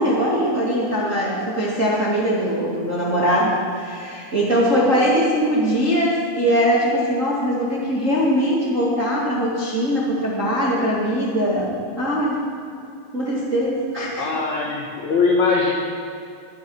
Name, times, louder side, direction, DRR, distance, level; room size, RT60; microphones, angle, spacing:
voice 1, 0.0-12.4 13.1-14.3, equal, 25° right, -5 dB, 1.7 m, -21 dB
voice 2, 14.2-15.7, left 4 dB, 70° left, -1 dB, 1.8 m, -20 dB
21.0 x 10.0 x 5.7 m, 2.6 s
omnidirectional pair, 5.3 m